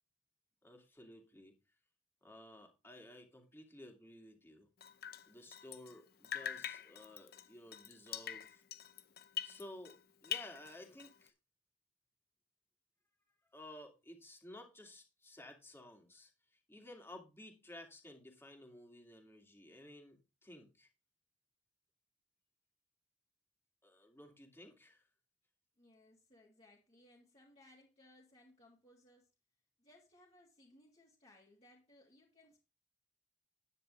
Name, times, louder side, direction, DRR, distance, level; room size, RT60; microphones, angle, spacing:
voice 1, 0.6-1.6 2.2-4.7 5.3-8.6 9.4-11.3 13.5-20.9 23.8-25.0, left 1 dB, 15° left, 2.7 m, -55 dB
Drip, 4.8-6.0 6.2-10.0 10.2-11.3, left 9 dB, 55° left, 0.7 m, -44 dB
voice 2, 25.8-29.3 29.8-32.6, left 1 dB, 35° left, 2.9 m, -64 dB
10.0 x 9.9 x 3.4 m
head